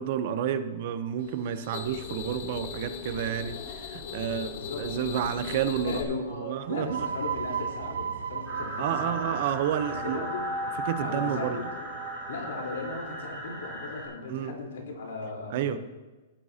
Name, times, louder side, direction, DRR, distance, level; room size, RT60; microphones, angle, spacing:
voice 1, 0.0-4.5 4.8-6.0 6.3-7.1 8.8-10.2 10.8-11.6 14.3-14.5 15.5-15.8, right 9 dB, 40° right, 12 dB, 0.7 m, -30 dB
sound 1, 1.2-6.0, left 5 dB, 55° left, 1.8 m, -39 dB
voice 2, 4.1-4.9 5.8-9.3 9.9-10.4 11.0-11.9 12.3-15.8, left 3 dB, 80° left, -1 dB, 3.9 m, -37 dB
sound 2, 6.6-14.1, right 7 dB, 90° right, 0.8 m, -37 dB
sound 3, 8.5-14.1, equal, ahead, 4.6 m, -36 dB
17.5 x 9.9 x 2.8 m, 1.2 s
hypercardioid pair, 170°, 0 cm